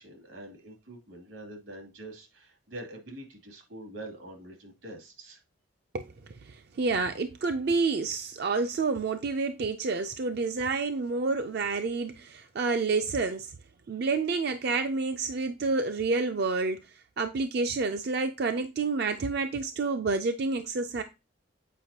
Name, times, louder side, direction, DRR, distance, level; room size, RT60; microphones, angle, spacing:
voice 1, 0.0-5.4, right 1 dB, 85° right, 2.6 m, -45 dB
voice 2, 5.9-13.5 13.9-21.0, right 4 dB, 50° right, 0.4 m, -29 dB
8.2 x 5.1 x 2.8 m
head